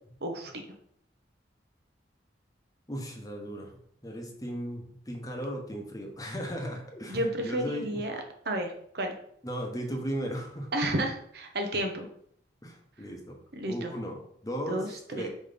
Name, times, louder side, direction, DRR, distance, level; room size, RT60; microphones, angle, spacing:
voice 1, 0.2-0.5 7.1-8.2 8.4-9.1 10.7-12.1 13.6-13.9 14.7-15.3, right 1 dB, 60° right, 4 dB, 1.0 m, -31 dB
voice 2, 2.9-8.0 9.4-10.7 12.6-13.4 13.7-15.3, equal, 20° left, 1 dB, 1.0 m, -36 dB
5.1 x 4.2 x 5.1 m, 0.67 s
head